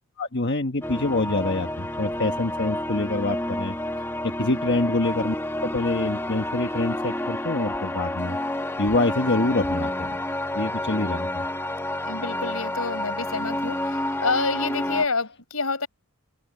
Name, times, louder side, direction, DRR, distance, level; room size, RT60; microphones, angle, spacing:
voice 1, 0.2-3.8 4.4-5.3 5.6-8.4 8.8-10.1 10.5-11.4, left 2 dB, 55° left, 1.5 m, -26 dB
sound 1, 0.8-15.0, left 1 dB, 10° left, 1.2 m, -29 dB
voice 2, 12.0-15.9, left 4 dB, 80° left, 4.8 m, -28 dB
head